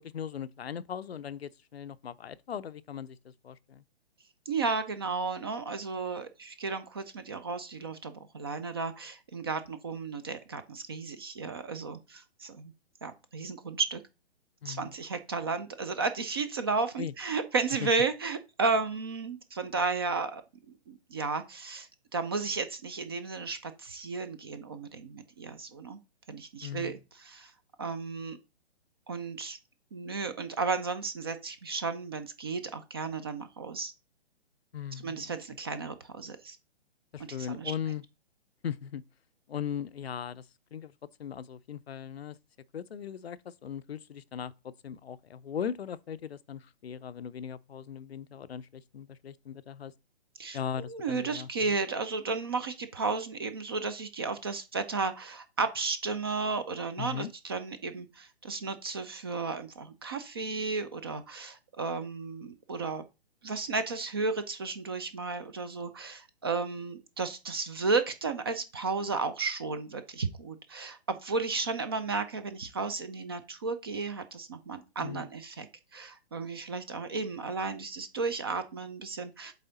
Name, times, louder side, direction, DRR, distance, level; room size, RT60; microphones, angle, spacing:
voice 1, 0.0-3.8 14.6-14.9 17.0-17.1 17.8-17.9 26.6-27.0 34.7-35.3 37.1-38.0 38.6-39.0 39.5-40.4 40.7-40.9 41.2-42.4 42.7-49.9 50.5-51.7 57.0-57.3 75.0-75.3, left 8 dB, 70° left, 0.5 m, -38 dB
voice 2, 4.5-12.7 13.0-14.0 14.6-20.4 20.7-26.0 26.3-27.5 27.8-28.4 29.1-29.6 29.9-33.9 35.0-36.6 37.4-37.7 50.4-63.0 63.4-75.7 75.9-79.5, right 4 dB, 25° right, 0.4 m, -33 dB
8.1 x 3.4 x 3.9 m
figure-of-eight pair, 125°, 33 cm